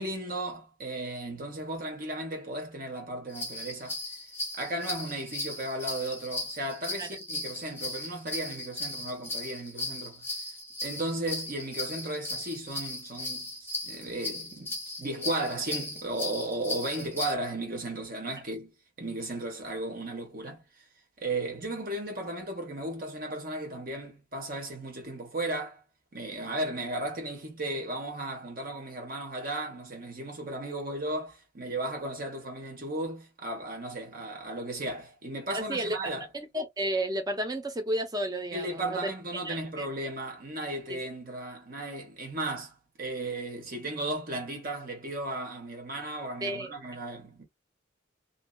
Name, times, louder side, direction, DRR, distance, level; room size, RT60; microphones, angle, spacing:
voice 1, 0.0-4.0 4.5-10.3 10.8-18.7 19.0-20.6 21.2-25.8 26.1-36.3 38.5-47.4, right 1 dB, 45° right, 1.2 m, -35 dB
sound 1, 3.3-17.3, left 2 dB, 10° left, 0.9 m, -37 dB
voice 2, 35.5-36.0 36.3-39.1 39.4-39.9 40.9-41.0 46.4-46.7, right 1 dB, 20° right, 0.6 m, -32 dB
2.7 x 2.6 x 2.2 m
head